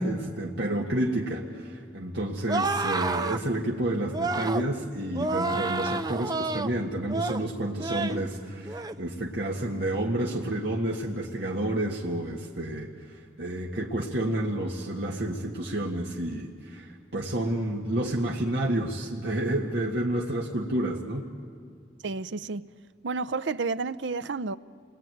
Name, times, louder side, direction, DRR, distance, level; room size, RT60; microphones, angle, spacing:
voice 1, 0.0-21.2, right 1 dB, 65° right, 1.8 m, -30 dB
sound 1, 2.5-3.4 4.1-4.7 5.1-6.7 7.1-7.4 7.8-8.2 8.6-9.0, right 3 dB, 20° right, 0.6 m, -29 dB
voice 2, 22.0-22.7 23.0-24.6, right 4 dB, 80° right, 0.6 m, -31 dB
29.0 x 21.5 x 9.3 m
head